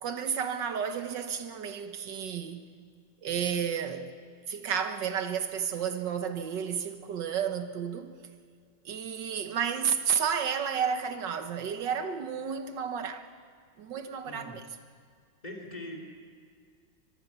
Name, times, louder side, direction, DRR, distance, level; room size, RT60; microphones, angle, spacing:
voice 1, 0.0-2.7 3.2-4.1 4.5-8.2 8.9-13.3 13.8-14.6, right 7 dB, 65° right, 1.8 m, -32 dB
voice 2, 14.2-14.8 15.4-16.0, left 1 dB, 20° left, 3.2 m, -42 dB
24.0 x 21.5 x 5.8 m
omnidirectional pair, 2.1 m